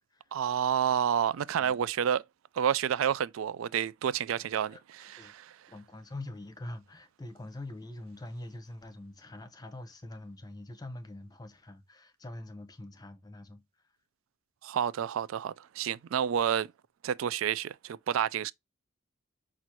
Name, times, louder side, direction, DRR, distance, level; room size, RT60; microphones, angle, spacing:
voice 1, 0.3-2.2 2.6-5.5 14.6-16.7 17.0-18.5, right 9 dB, 85° right, 0.3 m, -29 dB
voice 2, 5.7-13.6, left 1 dB, 20° left, 0.7 m, -44 dB
6.0 x 2.5 x 2.8 m
head